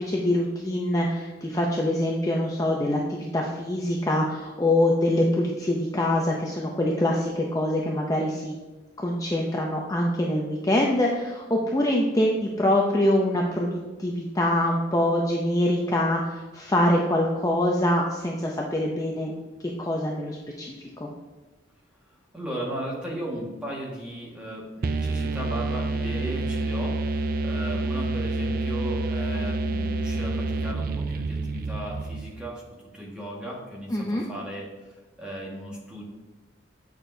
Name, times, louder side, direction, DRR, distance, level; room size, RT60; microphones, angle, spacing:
voice 1, 0.0-8.6 9.0-19.3 19.8-20.7 21.0-21.1 33.9-34.2, left 1 dB, 20° left, -2 dB, 0.5 m, -24 dB
voice 2, 22.3-32.6 32.9-34.7 35.2-36.0, right 1 dB, 5° right, -4 dB, 1.6 m, -36 dB
sound 1, 24.8-32.5, right 2 dB, 50° right, 0.4 m, -28 dB
8.5 x 6.0 x 2.7 m, 1.2 s
head